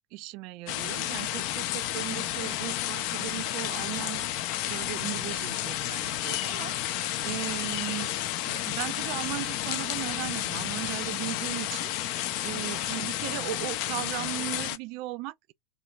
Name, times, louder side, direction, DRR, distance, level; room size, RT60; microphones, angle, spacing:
voice 1, 0.1-4.3 4.7-8.1 8.5-15.5, right 19 dB, 45° right, 0.4 m, -37 dB
sound 1, 0.7-14.8, left 13 dB, 45° left, 0.5 m, -31 dB
3.6 x 2.6 x 3.9 m
figure-of-eight pair, 90°, 0 cm